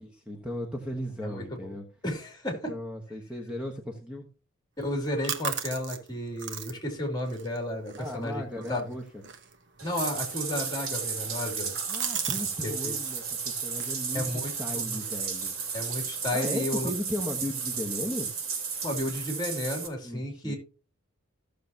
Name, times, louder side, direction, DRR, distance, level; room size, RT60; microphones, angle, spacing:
voice 1, 0.0-1.8 2.7-4.3 8.0-9.2 11.9-15.6 16.3-18.3 20.0-20.5, left 1 dB, 5° right, 1 dB, 1.2 m, -36 dB
voice 2, 1.2-1.7 2.0-2.7 4.8-8.4 8.7-8.8 9.8-11.8 12.6-13.0 14.1-15.0 15.7-16.9 18.8-20.6, left 1 dB, 20° left, 3 dB, 2.7 m, -33 dB
sound 1, 4.8-12.5 12.8-13.3 13.7-16.0, right 7 dB, 55° right, 1.2 m, -40 dB
Bathtub (filling or washing), 9.8-19.9, right 6 dB, 70° right, 3.1 m, -33 dB
15.5 x 6.7 x 2.9 m, 0.36 s
head